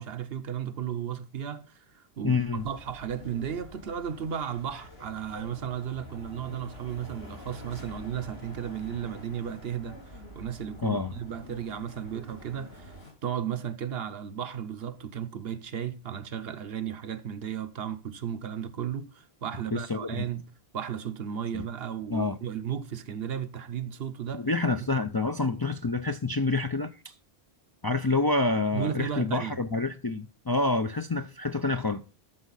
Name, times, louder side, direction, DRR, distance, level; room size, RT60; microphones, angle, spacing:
voice 1, 0.0-12.9 13.2-20.4 20.7-24.5 28.7-29.6, right 8 dB, 75° right, 1.0 m, -34 dB
voice 2, 2.2-2.6 10.8-11.1 19.7-20.3 21.5-21.7 22.1-22.4 24.3-27.1 27.8-32.0, left 3 dB, 35° left, 0.4 m, -28 dB
sound 1, 2.5-13.1, left 1 dB, 85° left, 4.4 m, -47 dB
13.0 x 6.3 x 4.0 m
omnidirectional pair, 1.0 m